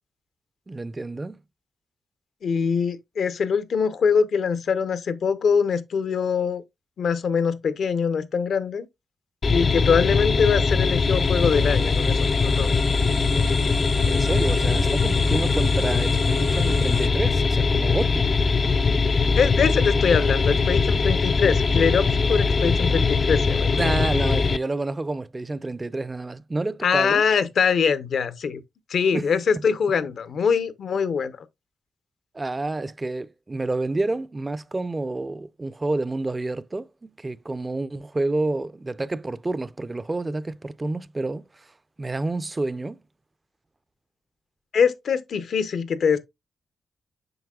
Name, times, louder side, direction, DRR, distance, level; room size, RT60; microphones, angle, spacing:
voice 1, 0.7-1.4 14.1-18.3 23.7-27.2 29.1-29.3 29.6-29.7 32.3-41.7 42.0-43.0, right 2 dB, 25° right, 0.5 m, -29 dB
voice 2, 2.4-6.6 7.0-8.9 9.5-12.7 19.4-23.9 26.8-28.6 28.9-31.3 44.7-46.2, left 6 dB, 70° left, 0.7 m, -23 dB
sound 1, 9.4-24.6, left 4 dB, 45° left, 0.4 m, -21 dB
sound 2, 10.3-17.1, right 3 dB, 45° right, 0.8 m, -39 dB
7.9 x 5.3 x 2.3 m
cardioid pair, 80°, 0 cm